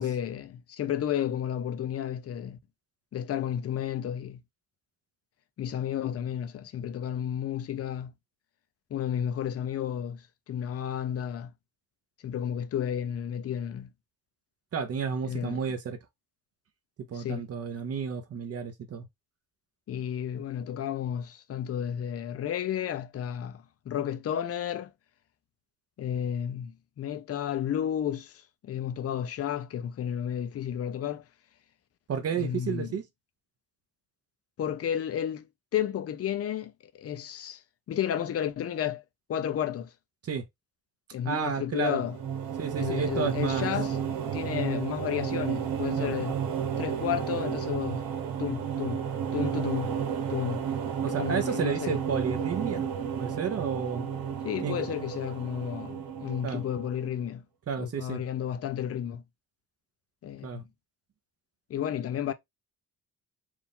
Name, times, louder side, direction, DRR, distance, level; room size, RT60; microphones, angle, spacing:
voice 1, 0.0-2.6 3.1-4.4 5.6-8.1 8.9-11.5 12.2-13.9 15.3-15.6 17.1-17.5 19.9-24.9 26.0-31.3 32.3-32.9 34.6-37.6 37.9-39.0 39.3-39.9 41.1-42.2 42.8-46.4 46.8-48.0 48.4-49.0 49.3-49.9 50.3-50.6 51.1-52.0 54.4-57.4 57.8-59.2 60.2-60.7 61.7-62.3, left 9 dB, 45° left, 0.6 m, -32 dB
voice 2, 14.7-16.0 17.1-19.1 32.1-33.0 40.2-40.4 41.2-42.0 42.6-43.7 46.0-46.1 51.0-52.9 53.1-54.1 54.6-54.8 56.4-56.6 57.7-58.2 60.4-60.6, right 6 dB, 45° right, 1.0 m, -31 dB
sound 1, 41.8-57.2, right 8 dB, 90° right, 1.3 m, -32 dB
4.6 x 2.6 x 3.6 m
cardioid pair, 160°, 35 cm